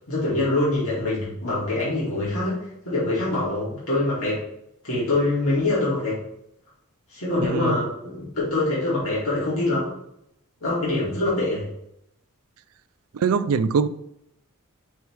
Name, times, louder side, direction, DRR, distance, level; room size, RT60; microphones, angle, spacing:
voice 1, 0.1-4.4 4.8-6.2 7.1-9.9 10.6-11.7, left 2 dB, 65° left, -8 dB, 2.4 m, -24 dB
voice 2, 7.4-7.7 13.1-13.9, right 5 dB, 70° right, 13 dB, 0.4 m, -22 dB
6.2 x 3.4 x 4.6 m, 0.77 s
head